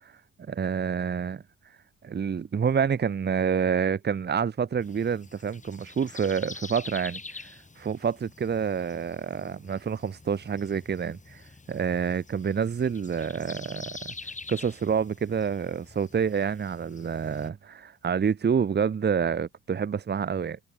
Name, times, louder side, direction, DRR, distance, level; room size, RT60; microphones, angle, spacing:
voice 1, 0.5-1.4 2.0-7.5 7.8-14.1 14.5-20.6, right 7 dB, 35° right, 1.2 m, -28 dB
sound 1, 4.8-17.5, left 3 dB, 25° left, 7.8 m, -46 dB
cardioid pair, 90°, 30 cm